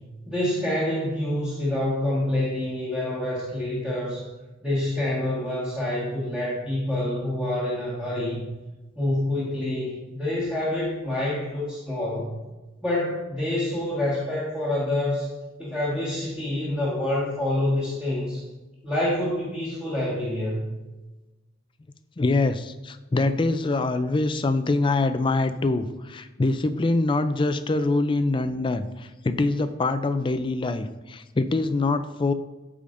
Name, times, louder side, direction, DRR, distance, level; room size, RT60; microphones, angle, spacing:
voice 1, 0.3-4.3 4.6-8.4 8.9-12.3 12.8-15.3 15.6-18.4 18.8-20.7, left 1 dB, 5° right, -9 dB, 1.6 m, -27 dB
voice 2, 22.2-32.3, left 2 dB, 25° left, 10 dB, 0.4 m, -24 dB
13.5 x 4.9 x 2.6 m, 1.1 s
head